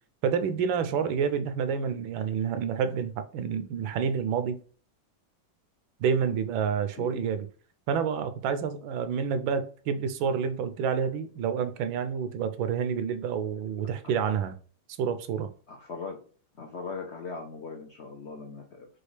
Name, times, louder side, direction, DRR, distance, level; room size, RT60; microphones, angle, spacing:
voice 1, 0.2-4.6 6.0-7.5 7.9-14.6 15.0-15.5, right 7 dB, 80° right, 1.4 m, -28 dB
voice 2, 15.7-16.2 16.6-18.9, left 4 dB, 70° left, 0.6 m, -39 dB
6.2 x 2.4 x 3.2 m
omnidirectional pair, 2.2 m